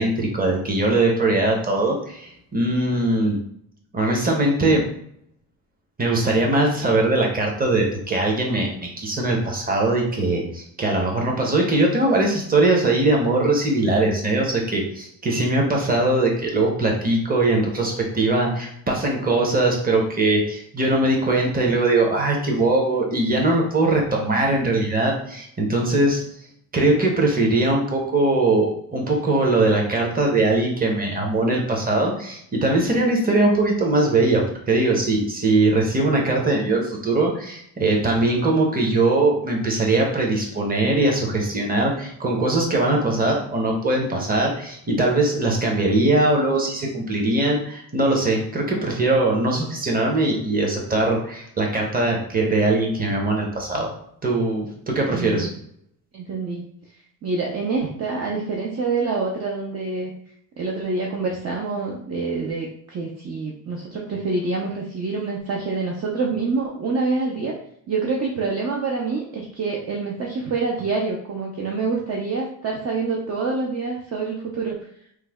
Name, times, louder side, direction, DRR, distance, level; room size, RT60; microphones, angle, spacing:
voice 1, 0.0-3.4 3.9-4.8 6.0-26.2 26.7-53.9 54.2-55.5, right 2 dB, 25° right, 0 dB, 0.9 m, -21 dB
voice 2, 55.1-55.5 56.1-56.6 57.2-60.1 60.6-67.5 67.9-74.8, right 4 dB, 45° right, -1 dB, 0.6 m, -26 dB
3.2 x 2.2 x 3.4 m, 0.69 s
cardioid pair, 110°, 37 cm